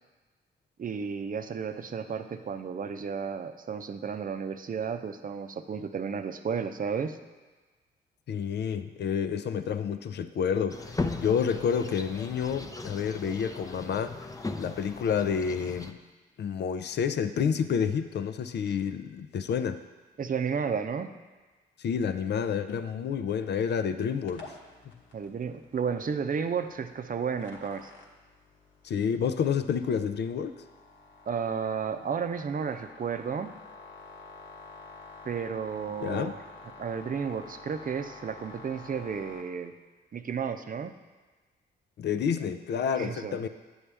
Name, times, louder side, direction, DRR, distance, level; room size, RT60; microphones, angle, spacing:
voice 1, 0.8-7.2 20.2-21.1 25.1-27.9 31.3-33.5 35.2-36.4 36.8-39.8 40.1-41.0 43.0-43.5, right 6 dB, 45° right, 8 dB, 0.7 m, -32 dB
voice 2, 8.3-14.3 14.6-16.0 16.4-19.8 21.8-24.5 28.8-30.6 36.0-36.4 42.0-43.5, left 7 dB, 60° left, 10 dB, 0.5 m, -29 dB
sound 1, 10.7-15.9, left 3 dB, 15° left, 0.6 m, -37 dB
sound 2, 24.3-39.4, left 3 dB, 75° left, 1.2 m, -50 dB
9.6 x 7.2 x 3.4 m, 1.3 s
supercardioid pair, 50°, 20 cm